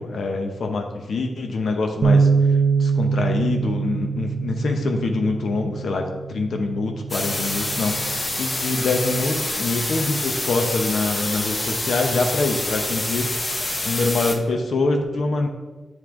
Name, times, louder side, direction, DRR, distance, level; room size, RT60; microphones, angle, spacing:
voice 1, 0.0-2.3 2.8-7.9 8.4-15.5, left 3 dB, 65° left, 4 dB, 0.7 m, -25 dB
Bass guitar, 2.0-8.3, right 5 dB, 65° right, 0.4 m, -23 dB
sound 1, 7.1-14.3, left 2 dB, 25° left, 0.6 m, -27 dB
8.9 x 3.2 x 3.6 m, 1.2 s
wide cardioid pair, 140°, 0 cm